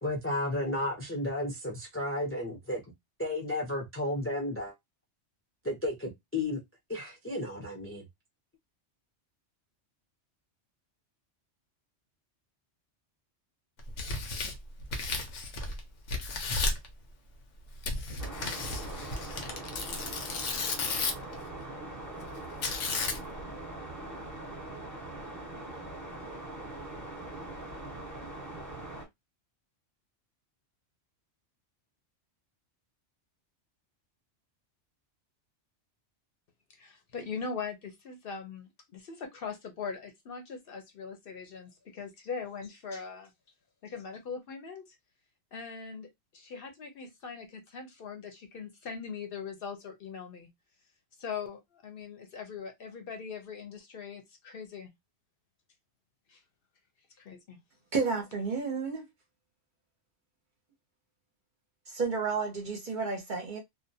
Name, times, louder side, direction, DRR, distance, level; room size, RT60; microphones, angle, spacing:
voice 1, 0.0-2.8 3.2-4.7 5.6-6.6 6.9-8.0, left 1 dB, 20° left, 0.4 m, -33 dB
Tearing, 13.8-15.8 16.1-16.9 17.8-21.3 22.6-23.4, left 3 dB, 90° left, 1.0 m, -33 dB
sound 1, 18.2-29.0, right 2 dB, 15° right, 0.9 m, -42 dB
voice 2, 36.7-43.3 43.8-45.0 45.5-50.5 51.2-54.9 56.3-56.4 57.2-57.6, left 5 dB, 60° left, 0.7 m, -41 dB
voice 3, 57.9-59.1 61.9-63.6, right 4 dB, 50° right, 0.7 m, -31 dB
2.4 x 2.1 x 2.6 m
omnidirectional pair, 1.2 m